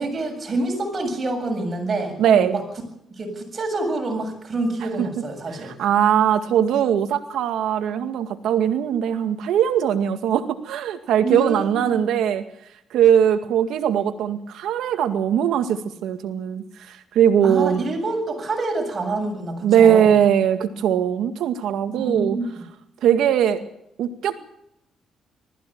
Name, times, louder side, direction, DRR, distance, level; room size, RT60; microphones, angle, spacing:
voice 1, 0.0-2.6 3.1-5.7 11.2-12.0 17.4-20.1 21.9-22.5, right 2 dB, 40° right, 4 dB, 7.5 m, -27 dB
voice 2, 2.2-2.6 5.0-5.1 5.5-12.4 12.9-17.9 19.6-22.4 23.0-23.6 24.0-24.5, right 9 dB, 80° right, 8 dB, 2.0 m, -20 dB
20.5 x 14.5 x 8.9 m, 0.78 s
cardioid pair, 90°, 0 cm